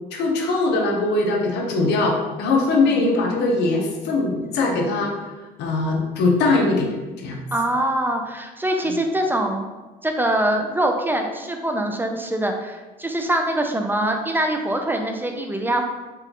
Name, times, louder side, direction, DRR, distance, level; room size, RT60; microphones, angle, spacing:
voice 1, 0.1-5.1 5.6-6.9 7.2-7.4 8.9-9.0, left 3 dB, 80° left, 1 dB, 0.8 m, -21 dB
voice 2, 2.7-3.1 7.5-9.6 10.0-15.8, right 1 dB, 10° right, 3 dB, 0.4 m, -23 dB
4.5 x 2.3 x 3.5 m, 1.2 s
cardioid pair, 110°, 17 cm